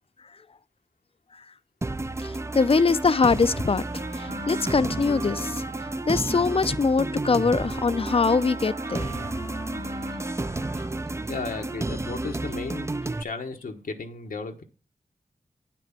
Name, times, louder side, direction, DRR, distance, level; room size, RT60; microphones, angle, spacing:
sound 1, 1.8-13.2, right 2 dB, 20° right, 0.4 m, -32 dB
voice 1, 2.2-3.8 4.2-5.6 6.1-9.1, left 4 dB, 40° left, 0.5 m, -23 dB
Wind instrument woodwind instrument, 3.8-11.2, right 1 dB, 65° right, 2.4 m, -39 dB
voice 2, 11.3-12.9 13.2-14.6, left 4 dB, 90° left, 1.2 m, -34 dB
9.2 x 6.1 x 5.9 m
wide cardioid pair, 65°, 14 cm